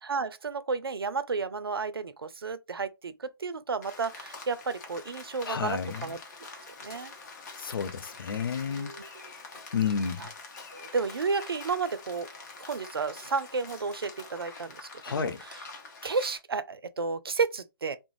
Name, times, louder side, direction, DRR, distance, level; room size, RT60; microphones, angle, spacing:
voice 1, 0.0-6.2 6.8-7.1 8.7-9.3 10.2-10.3 10.7-12.3 12.6-15.6 16.0-18.0, right 4 dB, 85° right, 0.4 m, -32 dB
Rain, 3.8-16.4, left 4 dB, 50° left, 0.8 m, -46 dB
voice 2, 5.5-6.1 7.6-8.9 9.7-10.3 15.0-15.4, left 6 dB, 70° left, 0.5 m, -31 dB
2.4 x 2.0 x 3.0 m
figure-of-eight pair, 135°, 12 cm